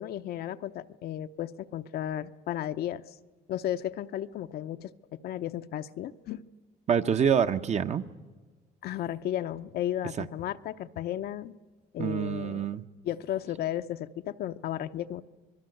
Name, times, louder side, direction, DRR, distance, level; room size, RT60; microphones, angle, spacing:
voice 1, 0.0-3.0 3.5-6.4 8.8-11.5 11.9-12.7 13.0-15.2, left 11 dB, 65° left, 10 dB, 0.8 m, -34 dB
voice 2, 6.9-8.0 10.2-10.3 12.0-12.8, right 7 dB, 40° right, 9 dB, 1.0 m, -26 dB
26.5 x 21.0 x 7.9 m, 1.3 s
cardioid pair, 110°, 17 cm